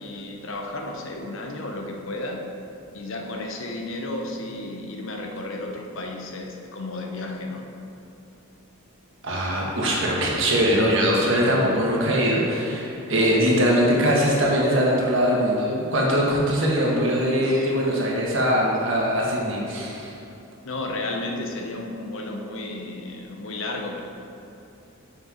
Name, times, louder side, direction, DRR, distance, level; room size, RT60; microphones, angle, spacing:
voice 1, 0.0-2.4 2.9-7.7 17.2-17.7 20.6-24.0, left 2 dB, 60° left, 2 dB, 0.8 m, -33 dB
voice 2, 9.2-20.1, equal, 60° right, -3 dB, 1.5 m, -21 dB
6.7 x 5.9 x 5.0 m, 2.9 s
head